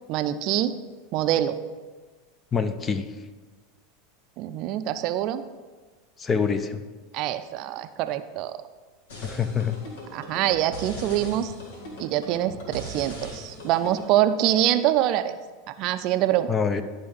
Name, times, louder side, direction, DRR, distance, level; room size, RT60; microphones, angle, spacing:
voice 1, 0.1-0.7 1.1-1.6 4.4-5.4 7.1-8.5 10.1-11.5 12.0-15.3 15.7-16.5, right 12 dB, 50° right, 11 dB, 0.4 m, -25 dB
voice 2, 2.5-3.1 6.2-6.8 9.2-9.8 16.5-16.8, left 6 dB, 25° left, 10 dB, 0.6 m, -25 dB
sound 1, 9.1-14.1, equal, 75° left, 1.9 m, -40 dB
11.5 x 5.2 x 3.9 m, 1.3 s
hypercardioid pair, 85°, 0 cm